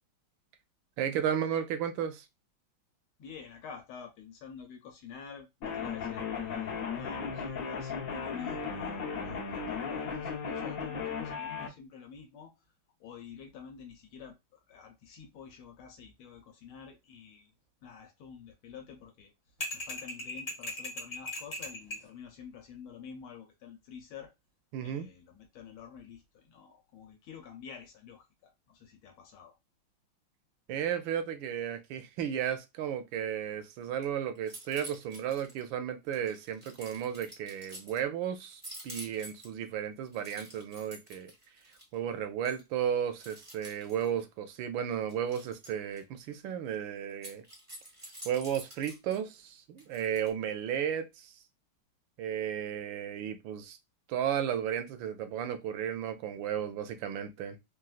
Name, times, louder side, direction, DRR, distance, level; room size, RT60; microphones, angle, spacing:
voice 1, 1.0-2.3 24.7-25.1 30.7-41.3 41.9-47.4 48.2-51.3 52.2-53.8 54.1-57.6, right 9 dB, 75° right, 1.2 m, -34 dB
voice 2, 3.2-6.2 7.0-12.5 13.0-17.5 17.8-19.3 19.7-24.3 24.8-29.5, left 6 dB, 85° left, 1.5 m, -49 dB
sound 1, 5.6-11.7, left 6 dB, 55° left, 1.1 m, -36 dB
sound 2, 19.6-22.1, left 1 dB, 25° left, 0.8 m, -38 dB
sound 3, 33.8-34.0 34.4-35.6 36.1-38.0 38.5-39.6 40.1-42.0 42.4-42.6 43.2-44.2 45.1-46.0 47.1-49.2 49.8-50.3, right 1 dB, 15° right, 0.5 m, -48 dB
3.9 x 2.3 x 2.3 m
omnidirectional pair, 2.3 m